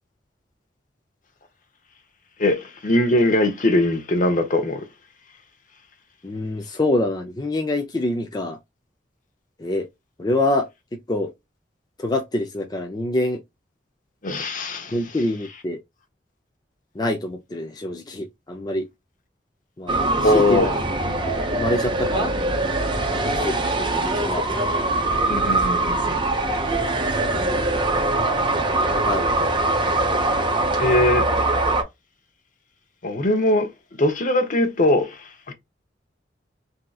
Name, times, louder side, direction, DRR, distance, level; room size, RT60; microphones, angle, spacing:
voice 1, 2.4-4.8 14.2-14.9 20.2-20.7 25.3-26.0 30.8-31.3 33.0-35.5, left 1 dB, 45° left, 0.8 m, -21 dB
voice 2, 6.2-8.6 9.6-9.9 10.2-11.3 12.0-13.4 14.9-15.8 16.9-18.9 19.8-20.8 21.1-21.2 21.5-22.3 23.3-24.5 27.3-27.6 28.9-29.3, left 1 dB, 20° left, 0.4 m, -26 dB
sound 1, 19.9-31.8, right 2 dB, 25° right, 0.8 m, -22 dB
3.6 x 2.8 x 2.3 m
head